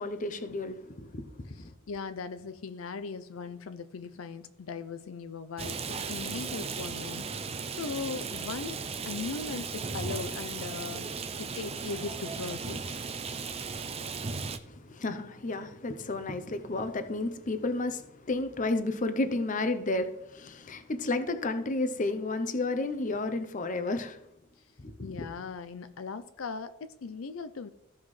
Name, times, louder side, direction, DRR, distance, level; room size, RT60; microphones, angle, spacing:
voice 1, 0.0-1.7 14.6-24.2 24.8-25.3, left 2 dB, 40° left, 0.7 m, -32 dB
voice 2, 1.9-11.1 11.4-13.0 16.7-16.8 25.0-27.7, left 5 dB, 80° left, 0.5 m, -39 dB
Rain, 5.6-14.6, right 5 dB, 30° right, 0.5 m, -36 dB
14.5 x 5.6 x 3.2 m
head